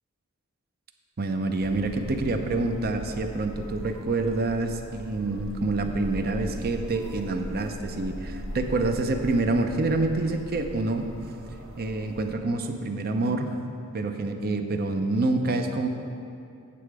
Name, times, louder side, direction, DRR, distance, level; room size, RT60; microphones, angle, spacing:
voice 1, 1.2-11.1 11.8-13.5 13.9-15.9, right 2 dB, 45° right, 5 dB, 0.6 m, -27 dB
sound 1, 1.6-12.3, equal, 65° right, 1.1 m, -40 dB
8.5 x 6.9 x 4.8 m, 2.6 s
head